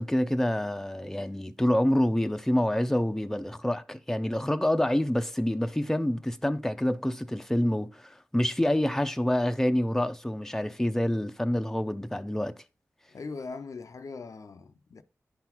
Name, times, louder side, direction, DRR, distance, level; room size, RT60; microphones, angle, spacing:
voice 1, 0.0-12.5, left 1 dB, 5° left, 0.5 m, -27 dB
voice 2, 13.1-15.0, left 4 dB, 70° left, 0.5 m, -40 dB
10.5 x 3.8 x 2.9 m
cardioid pair, 50°, 6 cm